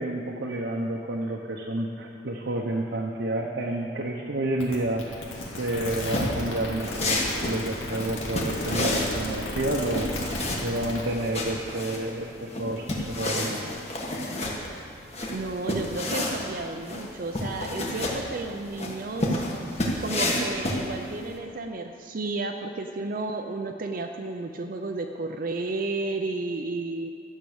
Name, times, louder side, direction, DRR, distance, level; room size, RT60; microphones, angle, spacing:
voice 1, 0.0-5.1 5.6-13.9, right 1 dB, 65° right, -1 dB, 0.9 m, -30 dB
sound 1, 4.6-11.1, left 1 dB, 90° left, 2.1 m, -34 dB
sound 2, 6.1-21.3, left 1 dB, 35° left, 1.5 m, -30 dB
voice 2, 15.3-19.4 20.0-27.1, right 3 dB, 45° right, 4 dB, 0.5 m, -32 dB
12.5 x 6.6 x 8.0 m, 2.5 s
head